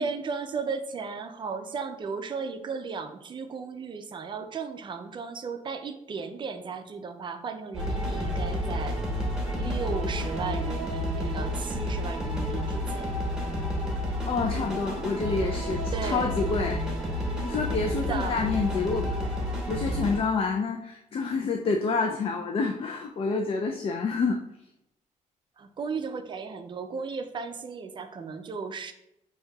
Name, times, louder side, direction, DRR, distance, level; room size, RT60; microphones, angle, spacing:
voice 1, 0.0-9.0 9.5-13.1 15.9-16.4 18.0-18.4 25.6-28.9, right 5 dB, 35° right, 7 dB, 0.4 m, -35 dB
sound 1, 7.7-20.2, equal, 5° right, 1.0 m, -30 dB
voice 2, 14.3-16.9 17.4-19.1 19.7-24.4, left 4 dB, 40° left, 4 dB, 0.4 m, -28 dB
6.2 x 2.7 x 2.3 m, 0.82 s
cardioid pair, 125°, 14 cm